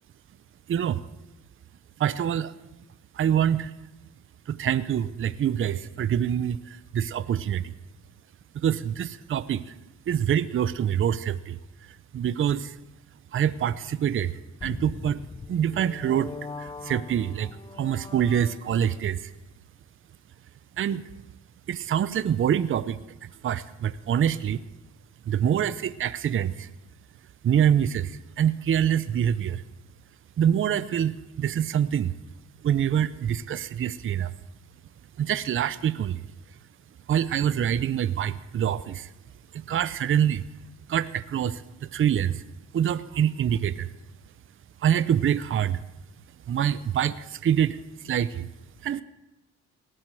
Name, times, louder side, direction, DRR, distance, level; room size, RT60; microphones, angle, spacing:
voice 1, 0.7-1.0 2.0-2.5 3.1-3.7 4.5-7.7 8.5-9.7 10.1-11.6 12.1-12.8 13.3-15.2 15.5-16.3 16.6-17.5 17.8-19.3 20.8-21.0 21.7-24.6 25.3-26.7 27.4-29.6 30.4-32.1 32.6-34.3 35.2-36.2 37.1-39.1 39.5-40.4 40.9-41.6 41.9-42.4 42.7-43.9 44.8-45.8 46.5-47.8 48.0-48.5 48.8-49.0, right 9 dB, 45° right, 15 dB, 0.6 m, -25 dB
sound 1, 14.6-19.0, left 4 dB, 15° left, 0.4 m, -41 dB
18.0 x 7.8 x 7.6 m, 0.99 s
cardioid pair, 90°, 30 cm